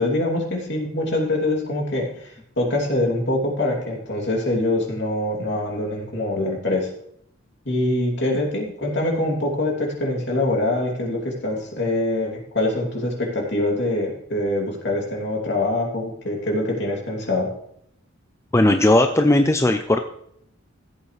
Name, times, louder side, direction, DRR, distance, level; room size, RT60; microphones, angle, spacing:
voice 1, 0.0-6.9 7.6-17.5, left 1 dB, 55° left, -1 dB, 2.8 m, -24 dB
voice 2, 18.5-20.0, left 1 dB, 15° left, 6 dB, 0.5 m, -17 dB
15.5 x 8.0 x 3.2 m, 0.69 s
head